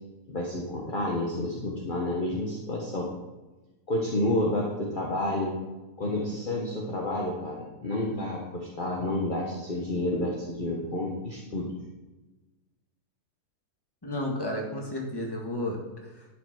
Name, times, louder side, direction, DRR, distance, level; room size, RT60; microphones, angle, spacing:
voice 1, 0.3-3.1 3.9-5.5 6.0-11.7, left 1 dB, 30° left, -3 dB, 1.5 m, -30 dB
voice 2, 14.0-16.3, left 1 dB, 15° left, 0 dB, 1.9 m, -32 dB
11.5 x 5.9 x 6.1 m, 1.1 s
omnidirectional pair, 1.7 m